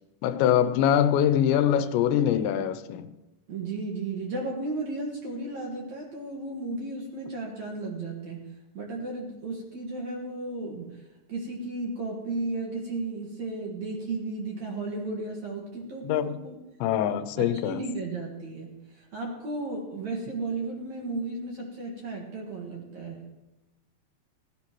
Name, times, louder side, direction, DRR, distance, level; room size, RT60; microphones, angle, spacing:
voice 1, 0.2-3.1 16.0-16.4 16.8-17.8, left 10 dB, 90° left, 3.0 m, -23 dB
voice 2, 3.5-8.4 8.7-11.0 11.3-16.6 17.4-23.2, right 2 dB, 55° right, 2.2 m, -34 dB
17.0 x 15.5 x 3.0 m
omnidirectional pair, 5.0 m